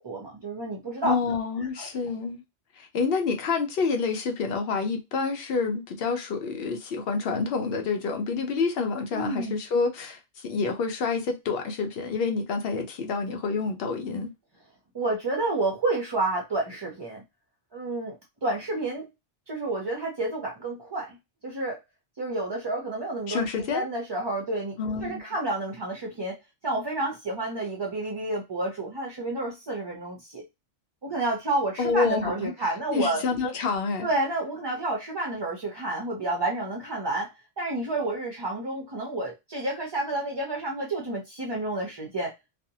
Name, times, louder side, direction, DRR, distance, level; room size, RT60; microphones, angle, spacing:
voice 1, 0.0-1.2 1.8-1.9 9.1-9.6 14.9-17.2 17.7-18.2 18.4-19.0 19.5-21.2 21.4-21.8 22.2-26.4 26.6-30.4 31.0-33.2 34.0-37.3 37.6-42.3, right 2 dB, 40° right, 0.4 m, -30 dB
voice 2, 1.0-2.4 2.8-14.3 23.3-23.9 24.8-25.2 31.8-32.5 32.9-34.1, left 4 dB, 70° left, 0.8 m, -28 dB
2.6 x 2.0 x 2.7 m
omnidirectional pair, 1.1 m